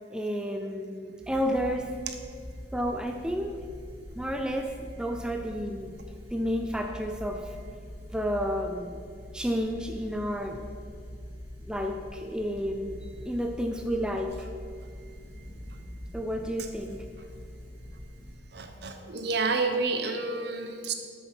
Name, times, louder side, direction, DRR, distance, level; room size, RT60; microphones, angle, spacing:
voice 1, 0.1-1.9 2.7-3.6 4.2-5.9 6.3-7.6 8.1-9.0 9.3-10.6 11.7-14.5 16.1-17.0, equal, 5° right, 3 dB, 0.4 m, -31 dB
sound 1, 1.2-18.4, equal, 25° left, 2.7 m, -44 dB
voice 2, 18.5-20.9, right 3 dB, 55° right, 6 dB, 0.9 m, -29 dB
8.1 x 6.7 x 6.0 m, 2.2 s
head